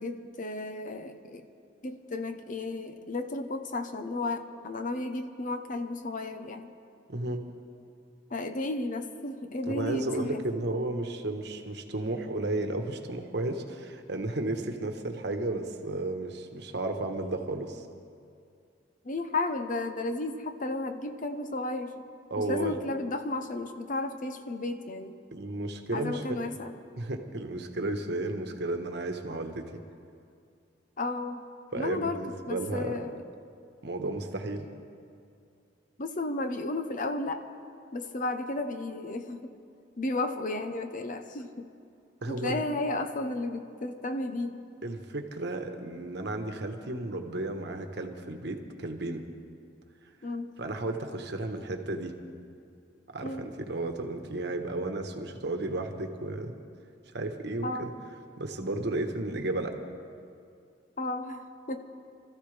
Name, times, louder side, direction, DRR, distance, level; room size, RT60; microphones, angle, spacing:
voice 1, 0.0-1.4 1.8-6.7 8.3-10.4 19.0-22.0 22.4-25.1 25.9-26.7 31.0-31.4 31.7-33.2 36.0-37.4 37.9-39.4 40.0-41.7 42.3-44.6 50.2-50.5 53.2-53.5 57.6-57.9 61.0-61.9, left 2 dB, 45° left, 7 dB, 0.8 m, -33 dB
voice 2, 7.1-7.4 9.7-17.9 22.3-22.8 25.3-26.2 27.0-29.8 31.7-33.0 33.8-34.7 42.2-42.6 44.8-49.2 50.6-52.2 53.1-56.5 57.1-57.9 58.4-59.7, right 2 dB, 65° right, 5 dB, 1.2 m, -33 dB
26.0 x 14.0 x 3.4 m, 2.4 s
head